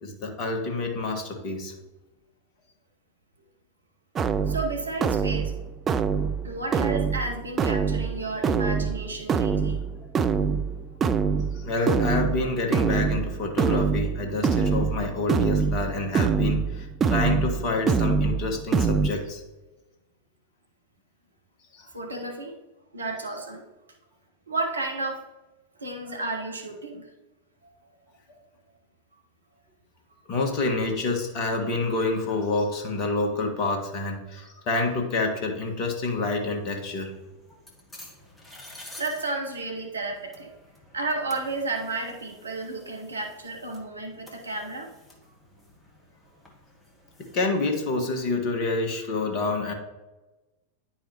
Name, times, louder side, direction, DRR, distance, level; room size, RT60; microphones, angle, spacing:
voice 1, 0.0-1.7 11.5-19.4 21.7-21.9 26.1-26.2 30.3-37.1 47.3-49.7, left 3 dB, 40° left, 3 dB, 1.4 m, -28 dB
sound 1, 4.1-19.1, right 6 dB, 25° right, 0.3 m, -25 dB
voice 2, 4.5-5.5 6.4-9.8 21.9-22.6 22.9-23.6 24.5-25.2 25.8-27.1 27.6-27.7 28.3-28.4 39.0-40.5 40.9-44.9, right 2 dB, 75° right, 3 dB, 1.0 m, -32 dB
sound 2, 36.4-48.0, left 1 dB, 10° left, 1.4 m, -51 dB
10.0 x 4.8 x 2.9 m, 1.1 s
figure-of-eight pair, 90°, 0 cm